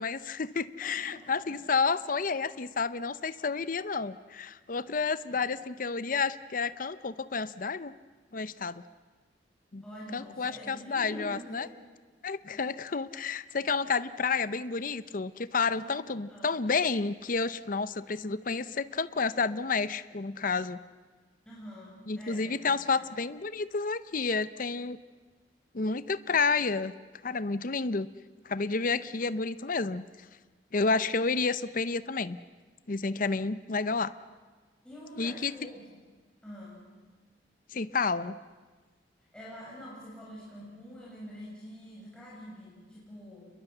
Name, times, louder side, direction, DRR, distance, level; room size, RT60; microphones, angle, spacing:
voice 1, 0.0-7.9 8.3-8.8 9.7-9.8 10.1-11.7 12.2-20.8 22.1-25.0 25.7-26.9 27.2-28.1 28.4-30.0 30.7-32.4 32.9-34.1 35.2-35.5 37.7-38.4, left 4 dB, 50° left, 14 dB, 0.7 m, -30 dB
voice 2, 0.8-1.6 5.3-5.4 9.8-11.7 12.5-12.6 15.7-15.9 16.3-16.5 18.2-18.3 21.4-23.1 34.8-35.9 36.4-36.9 39.3-43.5, equal, 5° left, -6 dB, 6.4 m, -46 dB
28.5 x 21.5 x 8.0 m, 1.4 s
head